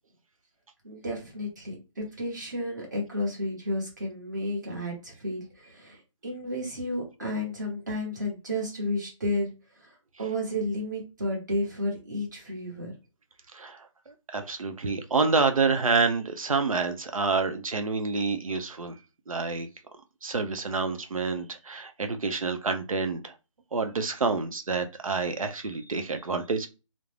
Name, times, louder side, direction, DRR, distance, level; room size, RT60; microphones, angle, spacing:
voice 1, 0.8-9.5 9.8-12.9, left 1 dB, 35° right, 1.1 m, -32 dB
voice 2, 13.5-19.0 19.3-19.7 20.2-23.3 23.7-26.7, right 4 dB, 85° right, 0.6 m, -28 dB
2.5 x 2.0 x 3.1 m
figure-of-eight pair, 175°, 17 cm